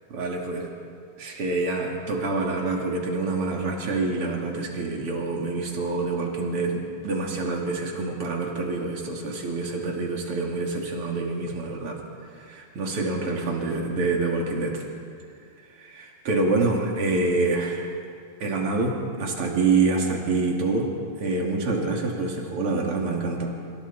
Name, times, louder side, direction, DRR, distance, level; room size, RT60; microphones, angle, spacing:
voice 1, 0.1-0.7 1.2-12.0 12.4-14.8 15.8-18.0 18.4-20.9 21.2-23.5, right 3 dB, 50° right, -1 dB, 3.5 m, -26 dB
27.0 x 26.0 x 4.4 m, 2.3 s
omnidirectional pair, 3.5 m